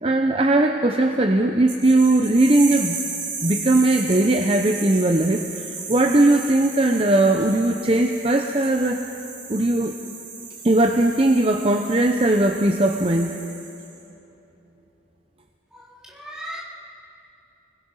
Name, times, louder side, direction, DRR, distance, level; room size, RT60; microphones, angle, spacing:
voice 1, 0.0-3.0 3.4-9.0 9.5-10.0 10.6-13.4, right 2 dB, 30° right, 4 dB, 0.8 m, -19 dB
sound 1, 1.7-14.0, right 5 dB, 75° right, 4.0 m, -35 dB
voice 2, 15.7-16.6, equal, 5° right, -5 dB, 3.3 m, -37 dB
29.5 x 20.5 x 5.6 m, 2.9 s
head